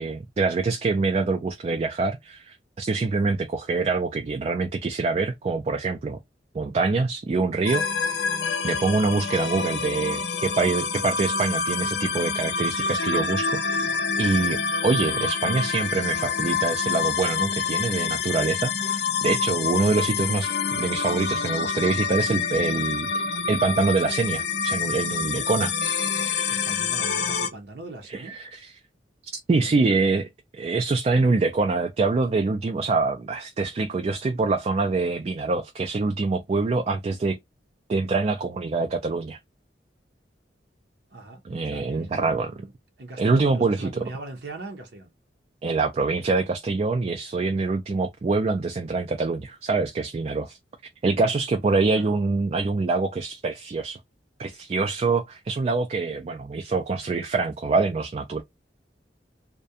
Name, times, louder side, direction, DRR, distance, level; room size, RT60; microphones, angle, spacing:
voice 1, 0.0-6.2 6.5-7.8 8.6-23.1 23.5-26.1 28.1-28.7 29.5-30.3 30.5-37.4 37.9-39.4 41.4-42.5 43.2-43.9 45.6-50.6 51.0-54.0 54.4-58.4, right 3 dB, 35° right, 0.3 m, -25 dB
sound 1, 7.6-27.5, left 5 dB, 65° left, 0.5 m, -27 dB
voice 2, 26.5-28.4 29.6-30.0 41.1-42.7 43.0-45.1 51.9-52.2, right 2 dB, 70° right, 0.6 m, -40 dB
2.3 x 2.2 x 2.6 m
head